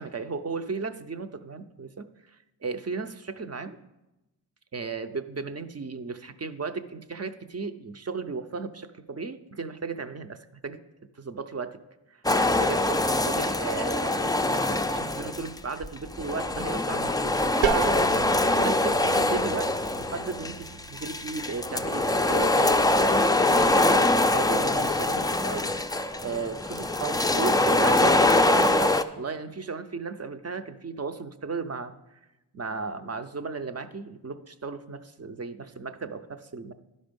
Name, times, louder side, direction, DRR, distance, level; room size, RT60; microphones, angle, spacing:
voice 1, 0.0-2.1 2.6-3.8 4.7-10.8 11.2-11.8 12.1-18.0 18.5-25.7 26.2-31.9 32.5-36.7, right 4 dB, 35° right, 10 dB, 0.6 m, -35 dB
sound 1, 12.2-15.6 15.8-29.0, left 2 dB, 10° left, 0.3 m, -24 dB
sound 2, 17.6-23.2, right 8 dB, 90° right, 0.5 m, -35 dB
11.5 x 5.3 x 5.2 m, 0.98 s
wide cardioid pair, 60°, 44 cm